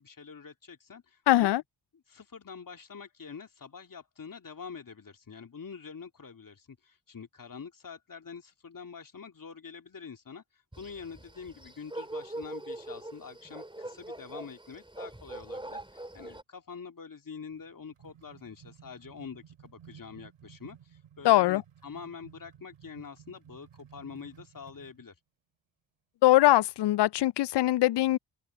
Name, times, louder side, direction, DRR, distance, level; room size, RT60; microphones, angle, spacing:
voice 1, 0.0-1.5 1.9-25.1, left 6 dB, 40° left, 2.7 m, -46 dB
voice 2, 1.3-1.6 21.2-21.6 26.2-28.2, left 15 dB, 55° left, 0.5 m, -22 dB
sound 1, 10.7-16.4, right 1 dB, 10° right, 3.2 m, -42 dB
sound 2, 17.5-25.0, right 9 dB, 70° right, 4.4 m, -55 dB
open air
hypercardioid pair, 40°, 49 cm